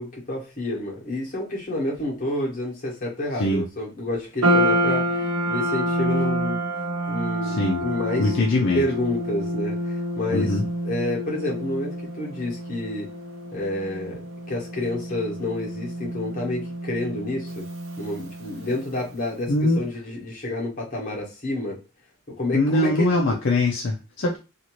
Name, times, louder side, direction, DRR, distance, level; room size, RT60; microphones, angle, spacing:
voice 1, 0.0-6.6 7.1-10.6 10.8-13.1 13.5-17.7 18.0-21.8 22.3-23.4, left 1 dB, 40° left, -2 dB, 1.1 m, -29 dB
sound 1, 4.4-18.8, equal, 80° right, 0.7 m, -28 dB
voice 2, 7.4-7.8 8.2-8.8 10.3-10.6 19.5-19.8 22.5-24.4, left 2 dB, 60° left, -1 dB, 0.5 m, -22 dB
2.7 x 2.5 x 2.9 m, 0.30 s
head